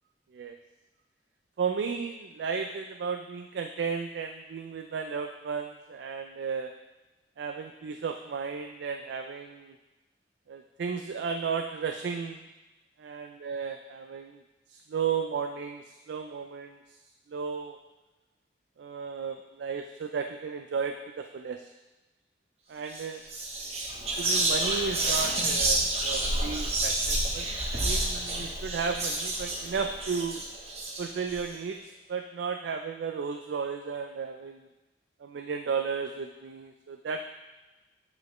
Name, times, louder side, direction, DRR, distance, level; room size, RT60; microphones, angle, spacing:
voice 1, 1.6-6.7 7.4-9.8 10.5-12.5 13.0-14.4 14.7-16.8 17.3-17.8 18.8-21.7 22.7-23.2 24.2-30.4 31.0-34.7 35.2-37.2, right 5 dB, 80° right, 5 dB, 0.3 m, -34 dB
Whispering, 22.8-23.0 23.3-31.4, right 1 dB, 35° right, 1.0 m, -29 dB
8.1 x 5.1 x 3.0 m, 1.1 s
head